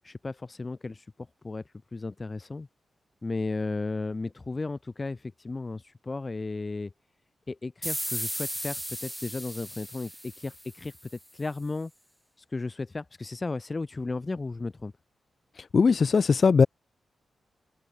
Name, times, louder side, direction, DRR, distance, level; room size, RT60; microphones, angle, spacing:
voice 1, 0.0-1.0 1.4-1.6 1.9-2.7 3.2-6.9 7.5-10.9 11.3-11.9 12.4-14.9, left 3 dB, 25° left, 1.2 m, -34 dB
sound 1, 7.8-11.1, equal, ahead, 1.0 m, -36 dB
voice 2, 15.7-16.7, left 5 dB, 45° left, 0.7 m, -19 dB
open air
wide cardioid pair, 120°, 0 cm